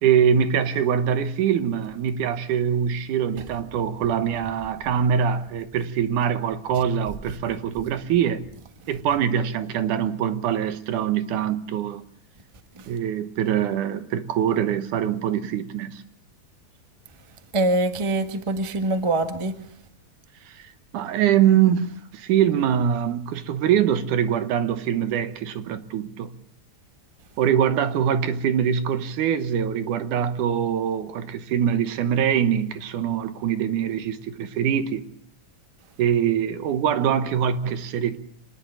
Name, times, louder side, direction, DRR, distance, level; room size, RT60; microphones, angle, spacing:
voice 1, 0.0-8.4 8.9-12.0 12.9-16.0 20.5-26.3 27.4-35.0 36.0-38.2, right 8 dB, 85° right, 2.7 m, -23 dB
voice 2, 17.5-19.6, right 2 dB, 25° right, 0.6 m, -24 dB
26.0 x 10.5 x 10.0 m
omnidirectional pair, 3.5 m